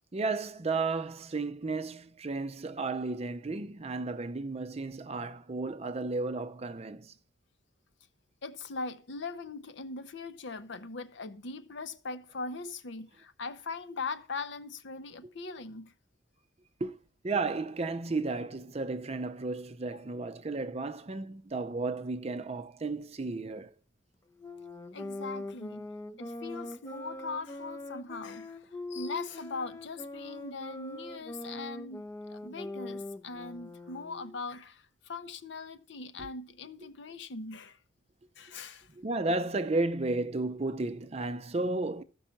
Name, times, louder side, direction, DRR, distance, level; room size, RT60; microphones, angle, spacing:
voice 1, 0.1-7.1 16.8-17.0 17.2-23.7 36.2-36.3 38.9-42.0, right 3 dB, 30° right, 0.5 m, -33 dB
voice 2, 8.4-15.9 19.9-20.0 24.9-25.9 26.2-37.8 38.4-38.9, left 4 dB, 60° left, 0.7 m, -40 dB
Sax Alto - F minor, 24.4-34.4, left 2 dB, 15° left, 0.5 m, -42 dB
13.5 x 5.5 x 5.8 m
head